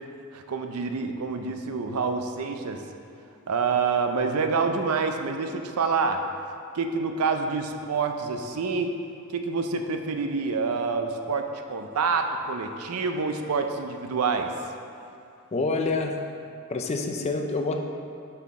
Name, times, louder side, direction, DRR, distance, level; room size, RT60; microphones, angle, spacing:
voice 1, 0.3-2.8 3.5-6.2 6.7-8.9 9.3-14.6, right 4 dB, 75° right, 6 dB, 0.5 m, -27 dB
voice 2, 15.5-16.2 16.7-17.8, left 3 dB, 30° left, 3 dB, 0.4 m, -27 dB
5.8 x 5.6 x 3.6 m, 2.5 s
head